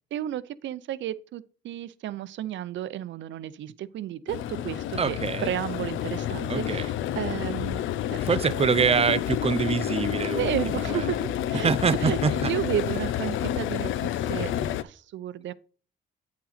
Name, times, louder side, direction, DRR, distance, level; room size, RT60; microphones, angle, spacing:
voice 1, 0.1-7.8 8.1-8.2 10.3-11.7 12.0-14.5 14.8-15.5, right 12 dB, 70° right, 0.6 m, -32 dB
sound 1, 4.3-14.8, left 11 dB, 80° left, 0.5 m, -29 dB
voice 2, 5.0-5.5 6.5-6.9 8.2-11.0 11.6-12.5 14.5-14.7, right 6 dB, 30° right, 0.6 m, -25 dB
8.7 x 5.7 x 4.1 m
cardioid pair, 90°, 20 cm